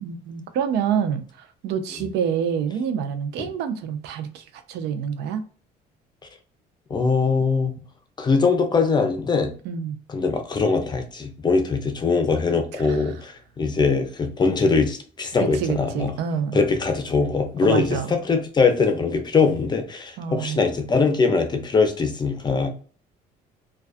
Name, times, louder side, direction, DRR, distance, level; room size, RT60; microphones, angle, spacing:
voice 1, 0.0-5.4 9.6-10.0 12.7-13.1 15.4-16.6 17.6-18.1 20.2-20.6, right 7 dB, 80° right, 0.5 m, -27 dB
voice 2, 6.9-7.7 8.2-9.5 10.1-16.1 16.5-22.7, left 4 dB, 25° left, 0.5 m, -22 dB
2.3 x 2.3 x 2.5 m
cardioid pair, 110°, 17 cm